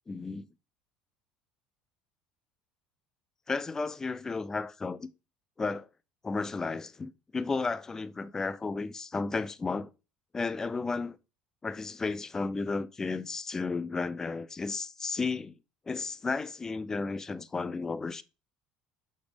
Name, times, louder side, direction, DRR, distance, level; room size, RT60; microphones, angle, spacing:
voice 1, 0.1-0.4 3.5-5.1 5.6-5.9 6.2-9.9 10.3-11.2 11.6-15.5 15.9-18.2, left 4 dB, 15° left, 0.3 m, -33 dB
6.2 x 2.1 x 3.3 m
supercardioid pair, 110°, 3 cm